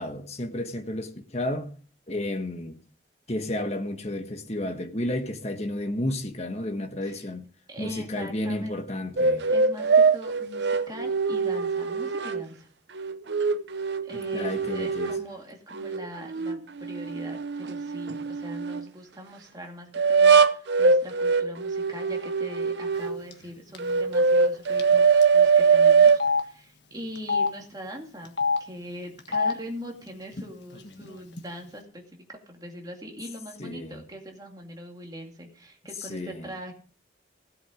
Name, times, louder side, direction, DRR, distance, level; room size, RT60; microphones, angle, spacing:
voice 1, 0.0-1.7 2.1-2.8 3.3-7.5 7.8-9.5 14.3-15.1 33.6-34.0 36.1-36.5, left 1 dB, 35° left, 1.3 m, -32 dB
voice 2, 7.7-9.0 9.3-12.7 14.0-36.7, equal, 20° right, 2.3 m, -41 dB
sound 1, 9.2-12.4 13.0-15.3 15.7-18.9 20.0-23.2 23.8-26.2, right 5 dB, 65° right, 0.7 m, -22 dB
Telephone, 23.3-23.5 23.7-23.9 24.8-24.9 25.2-25.3 26.1-26.4 27.1-27.5 28.2-28.6 29.2-29.5 30.3-30.4 30.7-31.4, left 4 dB, 65° left, 1.5 m, -26 dB
16.5 x 8.0 x 5.1 m
head